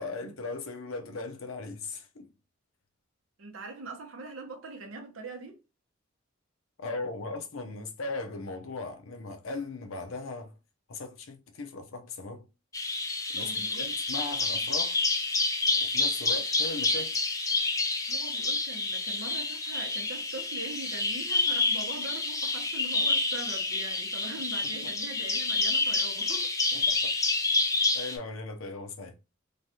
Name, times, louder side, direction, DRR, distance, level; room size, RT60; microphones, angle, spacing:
voice 1, 0.0-2.3 6.8-10.5 10.9-12.5 13.3-15.0 15.8-17.2 26.7-27.1 27.9-29.1, left 3 dB, 80° left, 0.6 m, -38 dB
voice 2, 3.4-5.6 13.4-14.0 14.3-14.6 18.1-26.5, right 3 dB, 85° right, 0.9 m, -42 dB
Bird vocalization bird call bird song, 12.7-28.2, left 3 dB, 15° left, 0.5 m, -28 dB
3.1 x 2.3 x 2.7 m
head